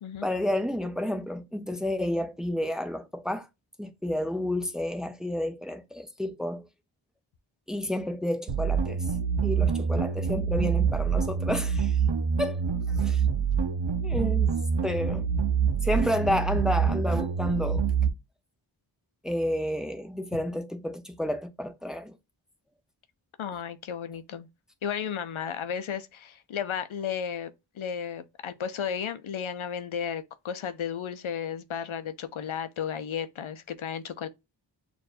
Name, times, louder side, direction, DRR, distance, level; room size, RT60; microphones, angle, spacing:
voice 1, 0.2-3.5 3.8-6.7 7.7-9.0 9.4-12.0 12.4-12.6 12.9-13.2 14.0-14.5 14.8-15.3 15.8-17.8 19.2-22.1, left 1 dB, ahead, 0.6 m, -30 dB
sound 1, 8.5-18.1, right 6 dB, 65° right, 0.7 m, -26 dB
voice 2, 23.4-24.5 24.8-27.5 27.8-34.3, left 8 dB, 80° left, 0.6 m, -34 dB
6.6 x 2.5 x 2.5 m
wide cardioid pair, 55°, 48 cm